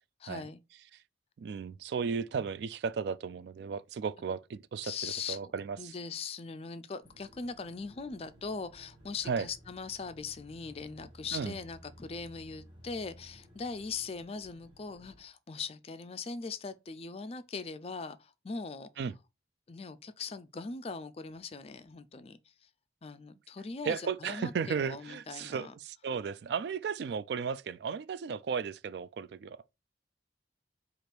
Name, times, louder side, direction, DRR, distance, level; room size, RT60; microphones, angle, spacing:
voice 1, 0.2-0.6 4.8-5.4 5.8-18.9 19.7-22.7 23.0-25.7, left 4 dB, 30° left, 0.4 m, -40 dB
voice 2, 1.4-5.9 9.3-9.5 11.3-11.5 19.0-19.1 23.8-29.6, right 6 dB, 65° right, 0.3 m, -35 dB
sound 1, 7.0-15.2, equal, 25° right, 1.1 m, -56 dB
4.8 x 2.5 x 4.4 m
head